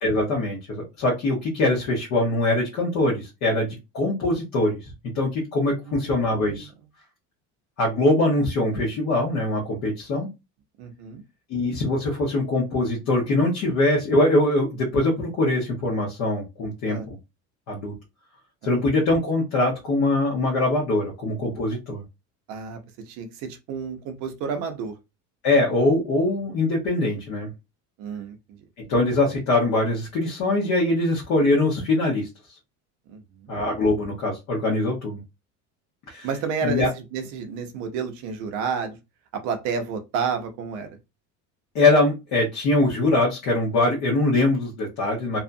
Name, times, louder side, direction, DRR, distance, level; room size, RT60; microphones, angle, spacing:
voice 1, 0.0-4.8 5.1-6.7 7.8-10.3 11.5-17.1 17.7-17.9 18.6-22.0 25.4-27.5 28.9-32.3 33.5-35.2 36.1-36.3 36.6-36.9 41.7-45.4, left 2 dB, 45° left, 0.9 m, -22 dB
voice 2, 5.9-6.2 6.6-6.7 10.8-11.2 16.9-17.1 22.5-22.8 23.1-24.9 28.0-28.4 33.1-33.5 36.2-39.0 39.3-40.9, right 5 dB, 50° right, 0.6 m, -30 dB
2.7 x 2.3 x 2.5 m
cardioid pair, 170°, 36 cm